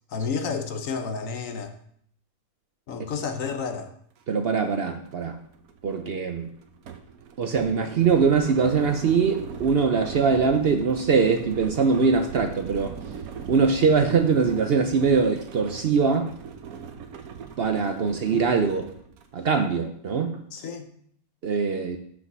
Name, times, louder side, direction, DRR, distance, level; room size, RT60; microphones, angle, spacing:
voice 1, 0.1-1.8 2.9-3.9 20.5-20.9, left 5 dB, 70° left, 7 dB, 1.2 m, -31 dB
sound 1, 4.2-4.3 4.6-19.4, right 6 dB, 85° right, 1.3 m, -40 dB
voice 2, 4.3-5.4 5.8-6.5 7.4-13.0 13.5-16.3 17.6-18.9 19.3-20.4 21.4-22.0, right 5 dB, 55° right, 6 dB, 0.7 m, -22 dB
6.2 x 5.3 x 6.1 m, 0.65 s
omnidirectional pair, 1.5 m